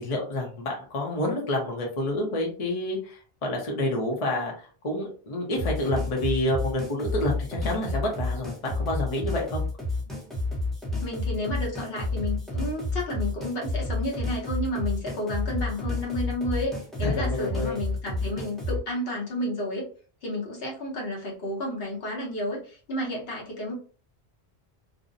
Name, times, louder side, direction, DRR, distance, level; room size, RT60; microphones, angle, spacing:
voice 1, 0.0-9.6 17.0-17.8, left 1 dB, 40° left, 0 dB, 0.6 m, -29 dB
sound 1, 5.5-18.8, left 2 dB, ahead, 0.6 m, -30 dB
voice 2, 11.0-16.7 17.0-19.9 20.2-23.7, left 1 dB, 65° left, -2 dB, 1.0 m, -31 dB
2.5 x 2.0 x 2.5 m, 0.40 s
omnidirectional pair, 1.1 m